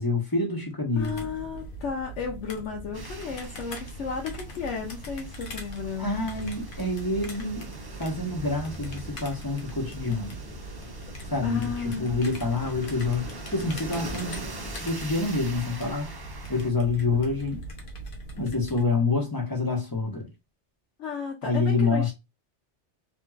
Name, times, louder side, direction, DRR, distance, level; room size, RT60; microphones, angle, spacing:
voice 1, 0.0-1.3 6.0-7.7 8.0-10.4 11.3-14.4 14.8-16.1 16.5-17.6 18.4-20.3 21.4-22.1, left 3 dB, 20° left, 0.8 m, -27 dB
voice 2, 1.0-6.3 11.4-12.1 21.0-22.1, left 5 dB, 85° left, 1.0 m, -33 dB
sound 1, 1.0-18.8, right 1 dB, 55° left, 0.8 m, -41 dB
sound 2, 2.9-16.7, right 2 dB, 30° right, 0.4 m, -42 dB
2.9 x 2.6 x 2.3 m
omnidirectional pair, 1.2 m